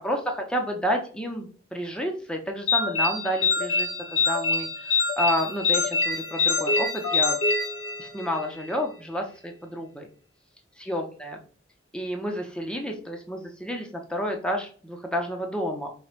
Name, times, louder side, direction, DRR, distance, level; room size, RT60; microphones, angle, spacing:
voice 1, 0.0-7.4 8.0-10.1 10.9-11.4 11.9-15.9, equal, 5° left, 2 dB, 0.5 m, -30 dB
sound 1, 2.7-8.4, left 4 dB, 75° left, 0.8 m, -25 dB
4.3 x 2.1 x 2.4 m, 0.43 s
head